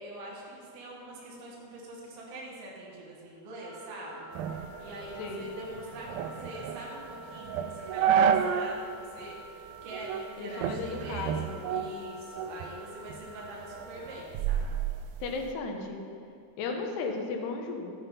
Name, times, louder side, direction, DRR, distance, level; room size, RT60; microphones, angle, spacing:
voice 1, 0.0-14.7, right 1 dB, 70° right, -4 dB, 3.7 m, -44 dB
Wind instrument woodwind instrument, 3.6-14.2, right 1 dB, 40° right, 2.5 m, -48 dB
sound 1, 4.4-8.8 9.2-9.3 9.9-10.3 10.6-12.7 13.1-15.5, right 8 dB, 85° right, 2.1 m, -30 dB
voice 2, 10.4-11.7 15.2-16.0 16.6-17.9, left 4 dB, 80° left, 3 dB, 3.2 m, -35 dB
12.5 x 8.9 x 5.3 m, 2.4 s
omnidirectional pair, 4.7 m